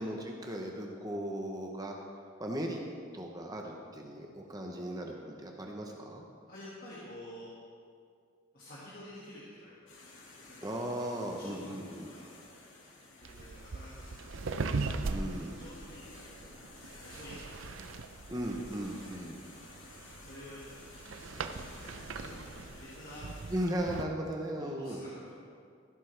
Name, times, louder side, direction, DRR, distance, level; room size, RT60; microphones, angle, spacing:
voice 1, 0.0-2.0 2.4-2.8 3.1-6.2 10.6-12.1 15.0-15.6 18.3-19.4 23.5-25.0, right 1 dB, 20° right, 1 dB, 0.9 m, -37 dB
voice 2, 6.5-7.5 8.5-10.0 10.4-10.7 11.0-11.1 11.4-12.3 13.2-14.4 15.6-16.1 17.0-17.8 18.2-18.4 18.7-19.2 19.7-20.7 21.5-23.6 24.6-25.3, left 1 dB, 45° left, -8 dB, 1.9 m, -50 dB
sound 1, 9.9-23.7, left 2 dB, 70° left, 2.2 m, -53 dB
sound 2, 13.2-24.0, right 3 dB, 75° right, 0.6 m, -40 dB
14.5 x 12.5 x 3.4 m, 2.2 s
head